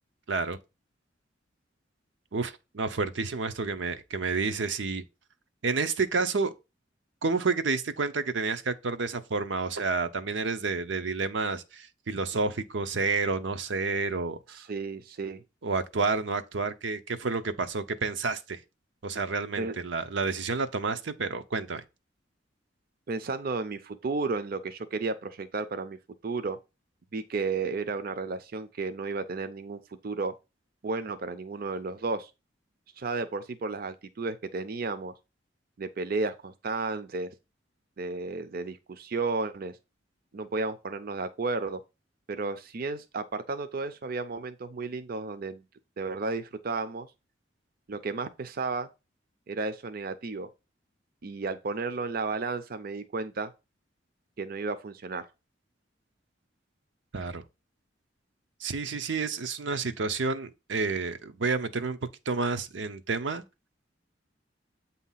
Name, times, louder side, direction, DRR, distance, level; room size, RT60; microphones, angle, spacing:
voice 1, 0.3-0.6 2.3-5.0 5.6-6.5 7.2-14.4 15.6-18.6 19.0-21.8 57.1-57.4 58.6-62.0 62.3-63.4, right 4 dB, 90° right, 0.7 m, -30 dB
voice 2, 14.5-15.4 19.6-19.8 23.1-26.0 26.2-26.6 27.1-30.3 30.8-32.3 33.0-35.1 35.8-37.3 38.0-39.8 40.3-41.8 42.3-45.6 46.0-47.1 47.9-48.9 49.5-50.5 51.2-53.5 54.4-55.3, right 3 dB, 55° right, 0.5 m, -33 dB
8.1 x 2.8 x 5.6 m
head